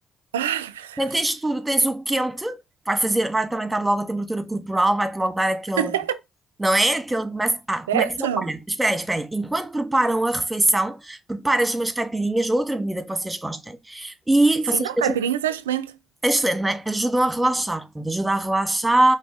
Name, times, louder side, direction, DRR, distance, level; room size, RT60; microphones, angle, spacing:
voice 1, 0.3-1.0 5.8-6.2 7.9-8.5 14.7-16.0, right 10 dB, 85° right, 0.4 m, -25 dB
voice 2, 1.0-2.6 2.9-5.9 6.6-15.2 16.2-19.2, right 1 dB, 15° right, 1.7 m, -23 dB
5.1 x 3.8 x 5.6 m
hypercardioid pair, 40°, 0 cm